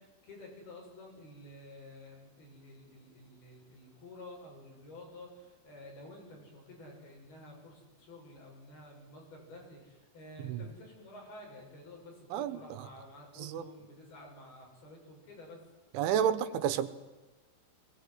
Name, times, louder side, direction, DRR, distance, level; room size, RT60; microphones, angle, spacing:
voice 1, 0.0-15.6, left 1 dB, 55° left, -1 dB, 9.1 m, -51 dB
voice 2, 12.3-12.9 13.4-13.7 15.9-16.9, right 9 dB, 80° right, 12 dB, 3.6 m, -31 dB
22.0 x 19.5 x 9.5 m, 1.2 s
omnidirectional pair, 5.4 m